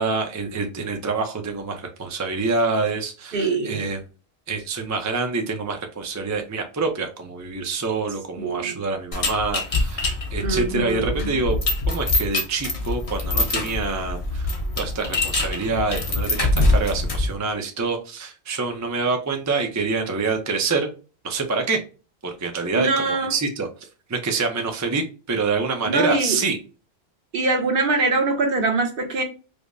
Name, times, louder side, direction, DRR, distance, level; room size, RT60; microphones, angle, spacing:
voice 1, 0.0-4.0 4.5-11.6 11.9-14.5 14.8-20.9 21.2-21.8 22.2-23.7 24.1-26.6, right 4 dB, 20° right, 0.5 m, -26 dB
voice 2, 3.3-3.9 8.4-8.8 10.4-11.4 22.7-23.3 25.8-26.4 27.3-29.2, right 3 dB, 60° right, 1.0 m, -23 dB
sound 1, 9.1-17.4, left 2 dB, 35° left, 0.7 m, -24 dB
5.0 x 2.1 x 2.5 m
omnidirectional pair, 1.1 m